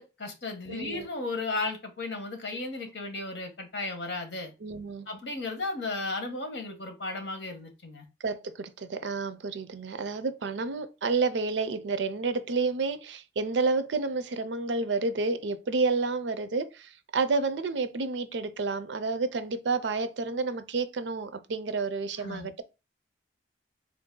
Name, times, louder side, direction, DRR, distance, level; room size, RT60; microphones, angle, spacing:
voice 1, 0.0-4.5 5.1-8.1 22.2-22.5, left 3 dB, 70° left, 1.1 m, -35 dB
voice 2, 0.7-1.1 4.6-5.1 8.2-22.6, right 4 dB, 80° right, 0.5 m, -30 dB
3.9 x 2.6 x 3.7 m
head